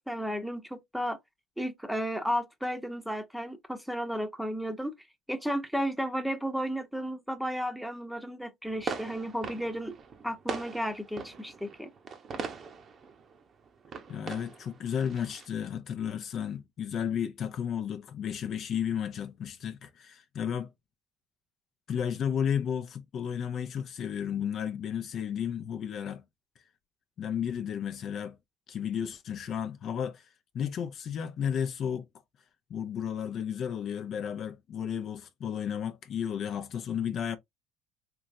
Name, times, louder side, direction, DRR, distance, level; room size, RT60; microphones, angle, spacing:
voice 1, 0.1-1.2 1.6-4.9 5.3-9.9 10.2-11.9, equal, ahead, 0.8 m, -33 dB
sound 1, 8.7-15.5, right 5 dB, 40° right, 0.8 m, -41 dB
voice 2, 14.1-20.7 21.9-26.2 27.2-28.4 28.7-30.3 30.5-32.1 32.7-37.4, left 8 dB, 50° left, 0.6 m, -33 dB
3.5 x 3.0 x 2.6 m
supercardioid pair, 90°, 0 cm